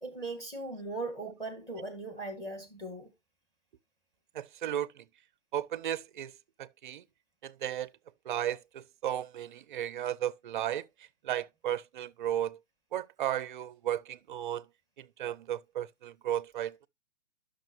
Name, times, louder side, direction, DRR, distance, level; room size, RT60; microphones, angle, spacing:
voice 1, 0.0-3.1, right 2 dB, 10° left, 1.9 m, -39 dB
voice 2, 4.3-5.1 5.5-7.0 7.4-7.9 8.2-12.6 12.9-14.7 15.0-16.8, right 11 dB, 45° right, 0.4 m, -35 dB
10.0 x 6.3 x 3.0 m
hypercardioid pair, 135°, 35 cm